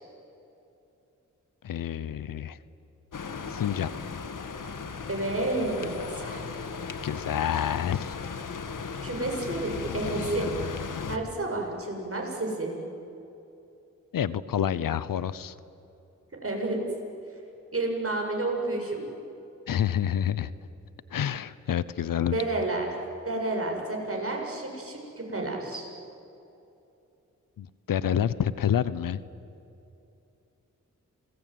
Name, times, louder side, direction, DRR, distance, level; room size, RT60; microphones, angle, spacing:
voice 1, 1.6-2.6 3.5-3.9 7.0-8.2 14.1-15.6 19.7-20.5 21.1-22.4 27.6-29.2, left 9 dB, 85° left, 17 dB, 0.9 m, -28 dB
sound 1, 3.1-11.2, left 5 dB, 70° left, 1.9 m, -36 dB
voice 2, 5.1-6.4 9.0-10.5 11.1-12.8 16.4-16.8 17.7-19.0 22.3-22.9 23.2-25.9, right 2 dB, 45° right, 1 dB, 7.9 m, -30 dB
27.0 x 21.5 x 9.3 m, 2.8 s
cardioid pair, 40°, 33 cm